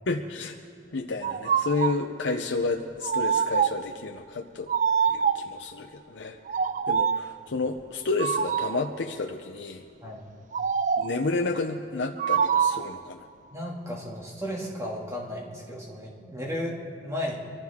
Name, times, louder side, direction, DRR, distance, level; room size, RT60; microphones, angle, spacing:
voice 1, 0.1-0.5 0.9-4.7 5.1-6.4 6.9-9.8 11.0-13.3, left 3 dB, 70° left, 4 dB, 0.7 m, -30 dB
sound 1, 1.2-2.1 3.0-3.9 4.7-5.6 6.5-7.3 8.2-8.9 10.5-11.3 12.2-13.0, right 7 dB, 40° right, 0.3 m, -25 dB
voice 2, 13.5-17.4, left 1 dB, 15° right, -3 dB, 2.3 m, -34 dB
23.5 x 15.0 x 3.6 m, 2.5 s
head